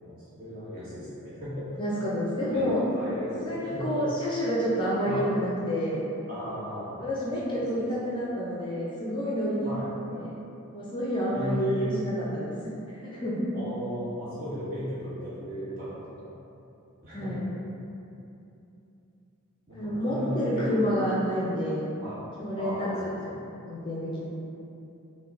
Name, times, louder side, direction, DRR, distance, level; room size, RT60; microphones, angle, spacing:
voice 1, 0.0-1.8 2.5-4.0 5.0-5.3 6.3-7.0 7.7-7.8 9.6-9.9 11.3-11.9 13.5-16.3 17.0-17.3 19.7-20.9 22.0-22.2 22.6-22.9 23.2-23.3, equal, 40° right, -11 dB, 1.4 m, -35 dB
voice 2, 1.8-2.8 3.4-6.0 7.0-9.7 10.1-10.4 10.7-13.5 17.1-17.4 19.7-21.9 22.4-23.0 23.7-24.3, equal, 20° left, -7 dB, 0.5 m, -29 dB
5.8 x 2.2 x 2.5 m, 2.8 s
head